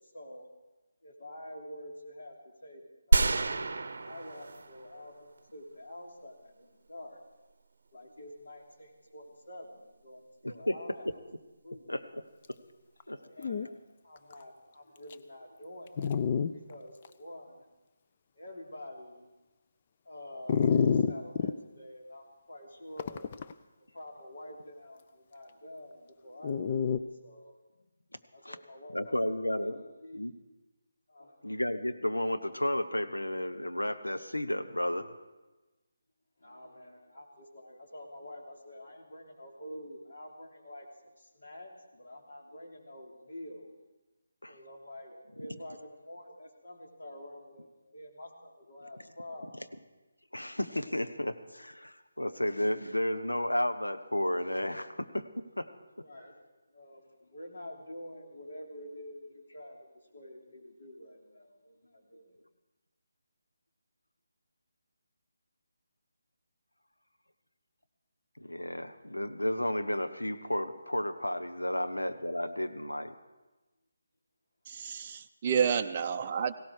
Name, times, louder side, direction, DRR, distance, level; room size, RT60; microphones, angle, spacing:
voice 1, 0.1-0.5 1.0-7.2 7.9-11.2 11.6-12.0 13.2-17.6 18.3-19.3 20.0-23.3 23.9-27.6 28.3-30.2 31.1-31.4 36.4-40.9 41.2-43.7 44.5-49.6 56.0-56.4 56.7-59.9 60.1-62.4 71.8-72.0 75.8-76.5, left 1 dB, 55° left, 0 dB, 3.2 m, -48 dB
sound 1, 3.1-5.1 5.4-5.5, right 3 dB, 60° right, 0.7 m, -28 dB
voice 2, 10.4-10.8 11.0-11.1 11.9-12.2 12.5-12.6 13.1-13.7 28.4-28.6 28.9-29.8 30.1-30.3 31.4-35.1 44.4-44.6 50.3-55.7 68.4-73.1, left 1 dB, 90° left, 8 dB, 1.1 m, -32 dB
Dog, 13.0-13.1 13.4-13.7 14.3-14.4 15.1-15.2 16.0-16.5 17.0-17.1 20.5-21.5 23.0-23.5 26.4-27.0, left 6 dB, 35° left, 0.5 m, -27 dB
voice 3, 74.7-76.5, right 7 dB, 30° right, 5 dB, 0.5 m, -30 dB
17.5 x 17.0 x 4.7 m, 1.1 s
figure-of-eight pair, 155°, 0 cm